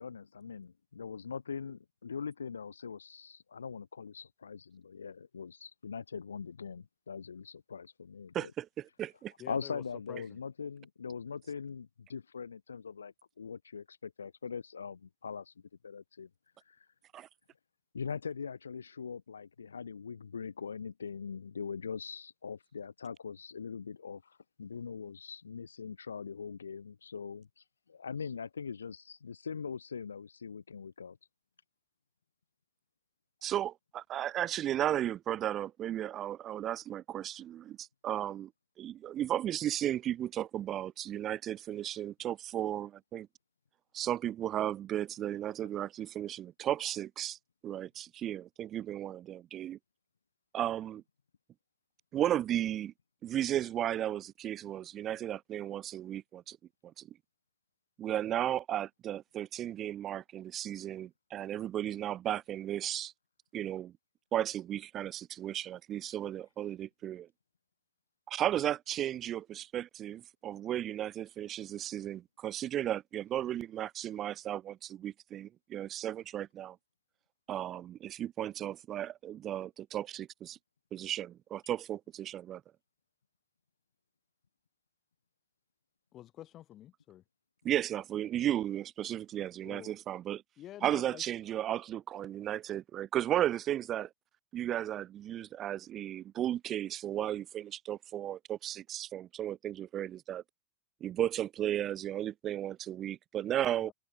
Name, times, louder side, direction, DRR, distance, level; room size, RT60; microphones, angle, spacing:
voice 1, 0.0-8.5 9.5-15.5 15.8-16.3 16.7-16.9 17.9-31.2, left 6 dB, 70° left, 0.5 m, -42 dB
voice 2, 8.3-9.3 17.1-17.3 33.4-38.5 38.8-43.3 43.9-47.4 47.6-49.8 50.5-51.0 52.1-52.9 53.2-56.6 56.8-57.1 58.0-63.1 63.5-63.9 64.3-67.3 68.3-76.8 77.5-80.6 80.9-82.6 87.6-90.4 90.8-94.1 94.5-100.4 101.0-103.9, right 11 dB, 30° right, 0.3 m, -35 dB
voice 3, 9.4-10.4 86.1-87.2 89.6-90.0 90.6-91.2 103.8-103.9, left 13 dB, 30° left, 6.5 m, -48 dB
figure-of-eight pair, 90°, 0 cm